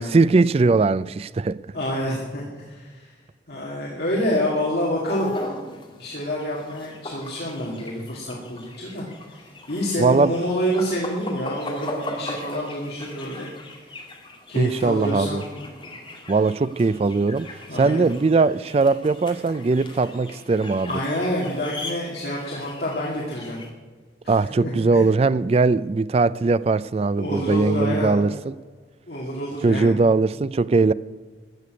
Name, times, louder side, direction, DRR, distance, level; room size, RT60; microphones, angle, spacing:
voice 1, 0.0-1.6 10.0-10.3 14.5-15.4 16.3-17.5 17.7-20.9 24.3-28.5 29.6-30.9, right 3 dB, 35° right, 0.3 m, -20 dB
voice 2, 1.7-3.1 3.5-5.3 5.6-5.7 6.0-13.5 14.5-15.4 17.7-18.1 20.8-23.6 24.2-25.0 27.2-28.2 29.1-29.9, equal, 60° left, 2.4 m, -28 dB
sound 1, 4.9-23.7, left 1 dB, 30° left, 2.1 m, -38 dB
14.5 x 6.8 x 9.5 m
head